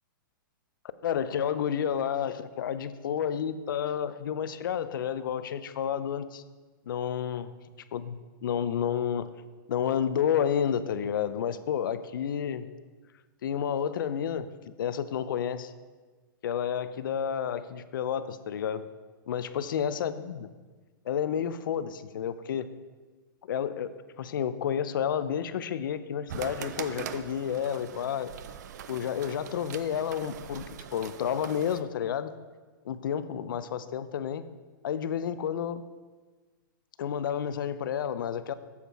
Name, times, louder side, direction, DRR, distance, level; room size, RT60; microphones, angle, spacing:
voice 1, 1.0-6.4 6.9-7.4 7.9-9.3 9.7-12.7 13.4-14.5 14.8-15.7 16.4-18.9 19.3-20.5 21.1-22.7 23.4-28.3 28.9-30.7 30.9-32.3 32.8-34.4 34.8-35.8 37.0-38.5, left 8 dB, 70° left, 13 dB, 0.5 m, -30 dB
sound 1, 26.3-31.8, right 9 dB, 50° right, 0.5 m, -42 dB
8.3 x 7.3 x 4.6 m, 1.4 s
hypercardioid pair, 165°, 11 cm